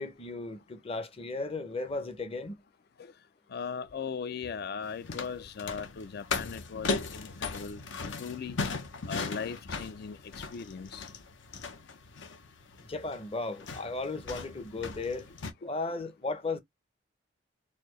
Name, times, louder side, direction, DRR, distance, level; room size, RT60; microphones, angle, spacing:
voice 1, 0.0-2.5 12.9-15.3 15.6-16.6, left 3 dB, 30° left, 0.7 m, -35 dB
voice 2, 3.5-7.8 8.2-8.6 9.1-10.2 10.5-11.0, left 6 dB, 55° left, 0.4 m, -38 dB
sound 1, 4.8-15.5, left 4 dB, 70° left, 0.8 m, -38 dB
4.3 x 2.7 x 3.1 m
head